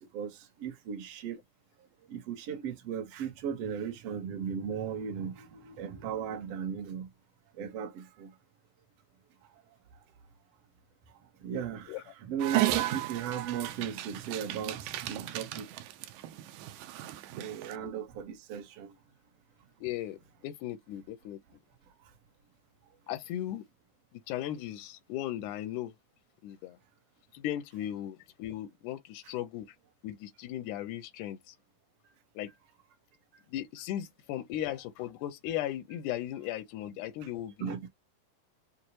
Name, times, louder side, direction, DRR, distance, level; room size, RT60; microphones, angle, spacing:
voice 1, 0.1-1.4 2.1-7.1 7.5-8.3 11.1-15.7 17.3-18.9 37.6-37.9, right 8 dB, 55° right, 1.8 m, -36 dB
Dog, 12.4-17.8, right 15 dB, 85° right, 1.8 m, -35 dB
voice 2, 19.8-21.4 23.1-23.6 24.1-25.9 26.4-26.8 27.3-29.8 30.0-31.6 32.4-32.5 33.5-37.8, left 12 dB, 80° left, 1.9 m, -37 dB
6.0 x 2.5 x 3.0 m
omnidirectional pair, 4.0 m